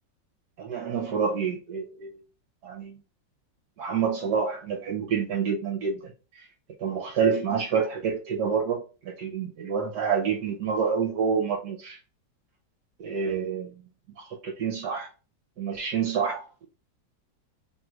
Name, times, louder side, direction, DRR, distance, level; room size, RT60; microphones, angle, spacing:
voice 1, 0.6-2.2 2.6-3.0 3.8-6.1 6.8-12.0 13.0-13.7 14.2-15.1 15.6-16.7, right 6 dB, 65° right, 1.4 m, -28 dB
3.3 x 2.5 x 4.4 m
omnidirectional pair, 2.0 m